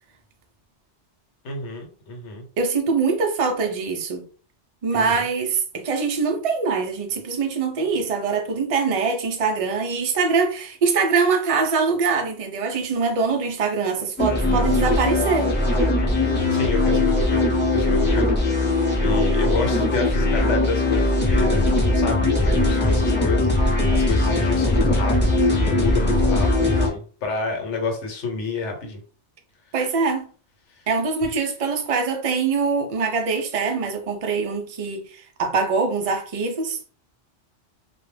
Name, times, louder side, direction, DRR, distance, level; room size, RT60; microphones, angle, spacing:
voice 1, 1.4-2.4 4.9-5.2 16.0-18.3 19.0-29.0, left 3 dB, 80° left, 1.1 m, -29 dB
voice 2, 2.6-4.2 4.8-15.5 29.7-30.3 30.9-36.8, right 4 dB, 60° right, 0.3 m, -23 dB
sound 1, 14.2-26.9, left 2 dB, 10° left, 0.7 m, -20 dB
2.3 x 2.1 x 3.2 m
omnidirectional pair, 1.2 m